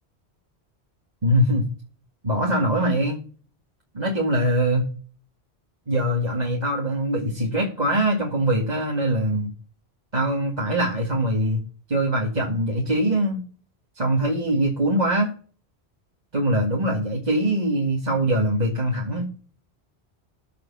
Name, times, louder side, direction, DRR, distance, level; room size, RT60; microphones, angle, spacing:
voice 1, 1.2-1.6 2.2-3.2 3.9-4.9 5.9-9.5 10.1-11.6 11.9-13.4 14.0-15.3 16.3-19.2, right 1 dB, 40° right, -2 dB, 2.3 m, -22 dB
14.0 x 5.2 x 7.4 m, 0.41 s
omnidirectional pair, 1.1 m